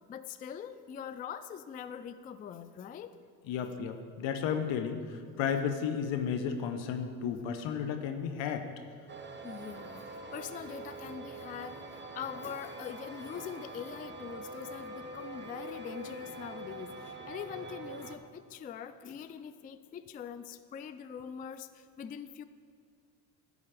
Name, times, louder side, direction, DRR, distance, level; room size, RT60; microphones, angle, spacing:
voice 1, 0.1-3.2 9.4-11.8 12.1-22.4, left 8 dB, 20° left, 12 dB, 0.3 m, -43 dB
voice 2, 3.5-8.7, left 7 dB, 65° left, 7 dB, 1.0 m, -33 dB
sound 1, 9.1-18.2, right 2 dB, 20° right, 1.0 m, -44 dB
12.0 x 4.2 x 7.4 m, 2.1 s
hypercardioid pair, 60°, 49 cm